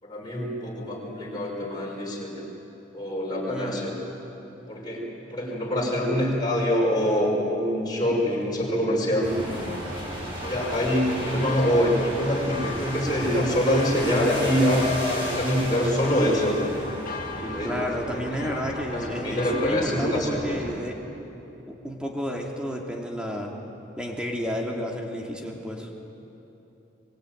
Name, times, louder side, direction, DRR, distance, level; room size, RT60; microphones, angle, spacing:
voice 1, 0.0-2.5 2.9-4.0 4.7-9.4 10.4-16.6 17.3-17.8 18.1-18.4 18.9-20.7, equal, 20° left, -3 dB, 5.8 m, -25 dB
voice 2, 3.5-3.8 17.6-21.0 21.7-23.5 24.0-25.9, equal, 5° right, 0 dB, 2.8 m, -31 dB
sound 1, 9.2-20.7, equal, 30° right, 7.5 m, -35 dB
sound 2, 10.4-19.8, left 5 dB, 45° left, 2.2 m, -39 dB
25.0 x 21.5 x 9.3 m, 3.0 s
head